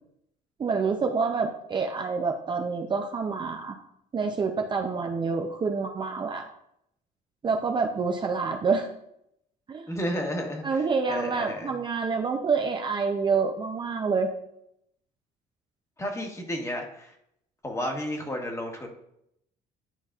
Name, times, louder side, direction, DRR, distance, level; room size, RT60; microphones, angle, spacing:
voice 1, 0.6-3.8 4.1-6.5 7.4-8.9 9.7-9.9 10.6-14.3, right 5 dB, 30° right, 3 dB, 0.5 m, -27 dB
voice 2, 9.9-11.7 16.0-17.1 17.6-18.9, equal, 15° left, 2 dB, 1.2 m, -32 dB
9.9 x 4.0 x 2.4 m, 0.76 s
cardioid pair, 110°, 17 cm